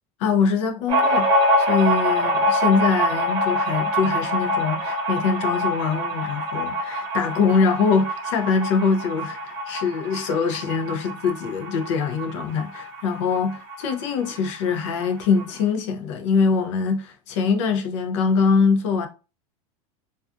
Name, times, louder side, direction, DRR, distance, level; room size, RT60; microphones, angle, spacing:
voice 1, 0.2-19.1, left 5 dB, 60° left, 0.5 m, -23 dB
sound 1, 0.9-14.0 14.3-14.4 14.7-15.4, equal, 45° right, 0.8 m, -25 dB
2.4 x 2.3 x 2.4 m
supercardioid pair, 175°, 18 cm